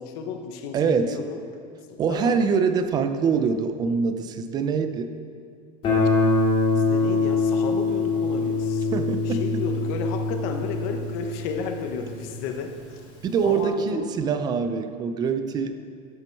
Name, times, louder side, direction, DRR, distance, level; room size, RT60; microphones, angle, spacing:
voice 1, 0.0-1.4 1.9-2.4 6.7-12.8 13.4-14.0, left 5 dB, 50° left, 5 dB, 0.9 m, -33 dB
voice 2, 0.7-1.2 2.0-5.1 8.9-9.5 13.2-15.7, right 5 dB, 20° right, 9 dB, 0.4 m, -24 dB
Guitar, 5.8-12.6, left 3 dB, 30° left, 2.5 m, -24 dB
13.0 x 6.0 x 4.5 m, 2.2 s
cardioid pair, 170°, 19 cm